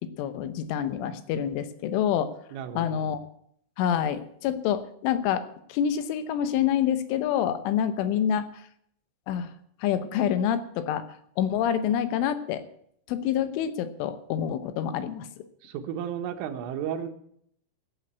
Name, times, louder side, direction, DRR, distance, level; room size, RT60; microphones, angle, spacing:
voice 1, 0.0-2.4 2.8-3.2 3.8-5.5 5.7-8.7 9.3-9.5 9.8-11.1 11.4-12.6 13.1-15.5, left 9 dB, 80° left, 12 dB, 3.5 m, -27 dB
voice 2, 2.5-3.1 15.6-17.1, right 9 dB, 90° right, 7 dB, 3.8 m, -33 dB
14.5 x 7.8 x 8.1 m, 0.67 s
omnidirectional pair, 5.6 m